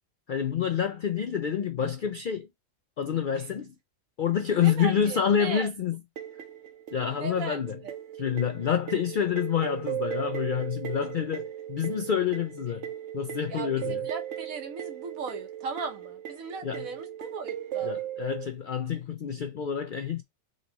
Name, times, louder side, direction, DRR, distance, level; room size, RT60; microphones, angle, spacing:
voice 1, 0.3-2.5 3.0-3.7 4.2-6.0 6.9-7.8 8.2-14.1 16.6-16.9 17.8-20.2, left 8 dB, 70° left, 0.4 m, -28 dB
voice 2, 4.5-5.7 7.1-7.9 13.5-18.0, right 5 dB, 80° right, 1.4 m, -38 dB
sound 1, 6.2-18.5, right 11 dB, 65° right, 1.0 m, -37 dB
4.0 x 3.0 x 3.9 m
omnidirectional pair, 1.4 m